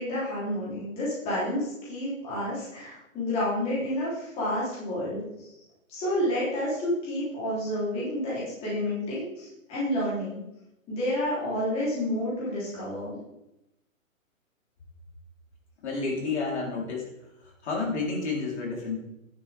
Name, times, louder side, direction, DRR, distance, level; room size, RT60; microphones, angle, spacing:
voice 1, 0.0-5.5 5.9-10.4 10.9-13.2, left 1 dB, 15° left, -8 dB, 3.4 m, -30 dB
voice 2, 15.8-17.1 17.6-19.0, left 4 dB, 55° left, -3 dB, 3.9 m, -30 dB
11.5 x 10.5 x 3.5 m, 0.88 s
hypercardioid pair, 165°, 41 cm